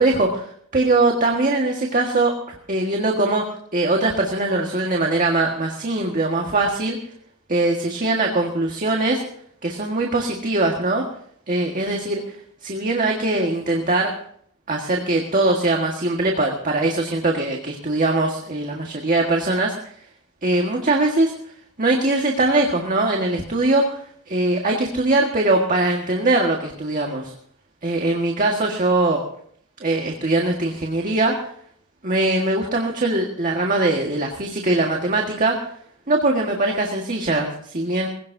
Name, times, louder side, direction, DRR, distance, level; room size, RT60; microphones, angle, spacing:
voice 1, 0.0-2.3 2.7-3.4 3.7-7.0 7.5-9.2 9.6-11.0 11.5-12.4 12.6-14.1 14.7-19.7 20.4-21.3 21.8-24.0 24.3-27.3 27.8-29.2 29.8-31.5 32.0-35.6 36.1-38.1, right 2 dB, 40° right, 1 dB, 1.7 m, -21 dB
20.5 x 17.5 x 2.7 m, 0.64 s
head